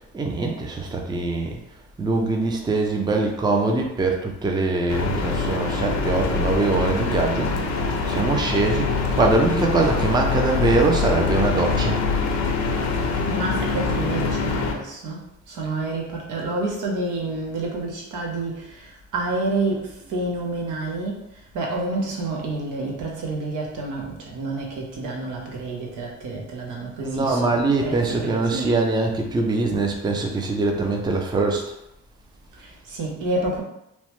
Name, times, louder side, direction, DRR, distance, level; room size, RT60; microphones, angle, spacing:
voice 1, 0.1-1.6 2.0-7.5 8.1-12.0 27.0-31.7, right 3 dB, 15° right, 2 dB, 0.4 m, -23 dB
sound 1, 4.9-14.7, left 4 dB, 65° left, 0.5 m, -24 dB
voice 2, 13.2-28.9 32.6-33.6, right 2 dB, 80° right, -1 dB, 0.8 m, -29 dB
3.0 x 2.1 x 3.0 m, 0.82 s
cardioid pair, 90°, 30 cm